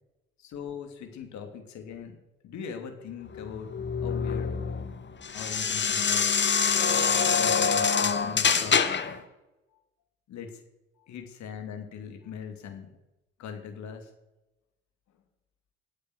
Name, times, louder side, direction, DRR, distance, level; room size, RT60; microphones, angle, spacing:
voice 1, 0.4-2.2 2.4-3.7 4.0-4.5 5.3-6.3 7.3-8.8 10.3-10.6 11.0-12.9 13.4-14.1, left 7 dB, 65° left, 5 dB, 3.1 m, -40 dB
sound 1, 3.3-9.2, left 6 dB, 35° left, 1.8 m, -25 dB
21.5 x 8.5 x 6.6 m, 0.98 s
hypercardioid pair, 50°, 31 cm